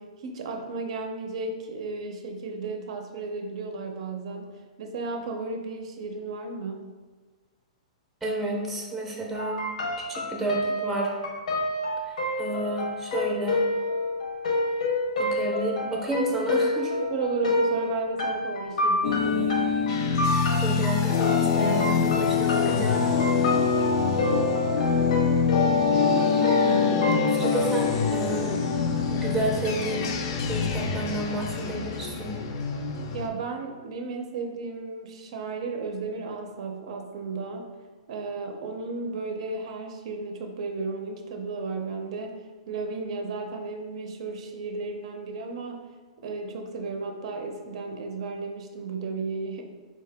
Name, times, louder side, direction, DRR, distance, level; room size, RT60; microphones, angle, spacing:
voice 1, 0.0-4.5 4.8-6.8 17.0-19.6 33.1-37.7 38.1-42.4 42.7-45.8 46.2-49.6, right 4 dB, 55° right, 3 dB, 0.5 m, -34 dB
voice 2, 8.2-9.6 10.1-11.1 12.4-13.6 15.2-16.9 20.6-23.1 27.2-28.5 29.1-30.0 30.5-32.3, right 2 dB, 5° right, -2 dB, 0.6 m, -30 dB
sound 1, 9.4-27.6, left 1 dB, 80° left, 0.8 m, -28 dB
sound 2, 19.0-33.3, left 6 dB, 45° left, 0.4 m, -24 dB
4.3 x 2.7 x 3.3 m, 1.4 s
hypercardioid pair, 165°, 4 cm